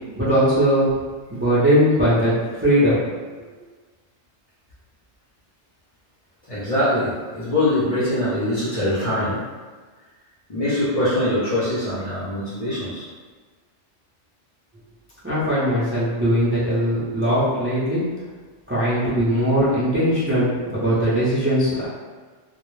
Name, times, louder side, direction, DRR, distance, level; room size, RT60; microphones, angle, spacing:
voice 1, 0.2-1.0 1.3-2.3 2.6-3.0 15.2-18.0 18.7-21.9, equal, 20° right, -11 dB, 0.3 m, -20 dB
voice 2, 6.5-9.4 10.5-13.1, left 1 dB, 45° left, -10 dB, 0.5 m, -23 dB
2.1 x 2.0 x 3.0 m, 1.4 s
omnidirectional pair, 1.2 m